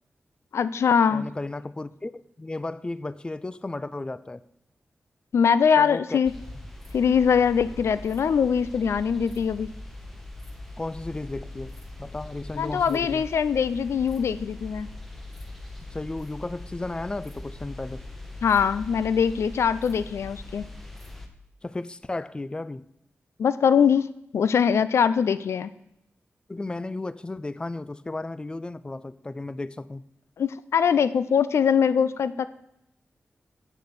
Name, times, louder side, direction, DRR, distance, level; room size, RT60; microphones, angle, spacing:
voice 1, 0.5-1.3 5.3-6.3 6.9-9.7 12.6-14.9 18.4-20.6 23.4-24.1 24.3-25.7 30.4-32.5, left 7 dB, 90° left, 15 dB, 0.4 m, -22 dB
voice 2, 1.1-4.4 5.8-6.2 10.8-13.2 15.9-18.0 21.6-22.8 26.5-30.0, left 2 dB, 20° left, 16 dB, 0.4 m, -34 dB
sound 1, 6.2-21.3, left 2 dB, 5° left, 1.2 m, -41 dB
8.3 x 6.5 x 6.9 m, 0.81 s
wide cardioid pair, 85°, 4 cm